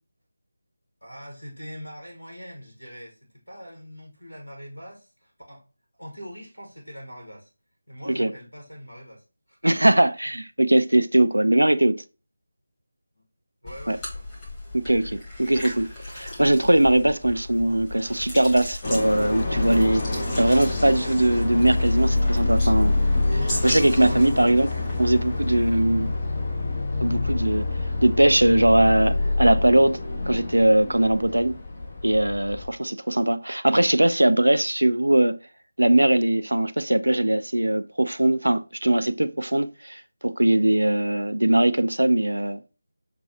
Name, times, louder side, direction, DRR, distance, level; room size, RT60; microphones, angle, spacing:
voice 1, 1.0-5.6 6.0-7.5 7.9-9.6 13.2-13.3 13.6-14.3 24.1-24.4, equal, 90° left, 1.2 m, -42 dB
voice 2, 9.6-12.0 13.9-14.0 14.7-23.0 23.3-24.7 25.0-26.1 27.0-27.7 28.0-30.0 30.3-31.5 32.0-35.4 35.8-42.6, right 1 dB, 75° right, 0.4 m, -21 dB
sound 1, 13.7-25.9, left 1 dB, 15° left, 1.3 m, -37 dB
sound 2, 18.8-32.7, left 2 dB, 35° left, 0.7 m, -26 dB
6.7 x 2.3 x 2.8 m
figure-of-eight pair, 160°, 0 cm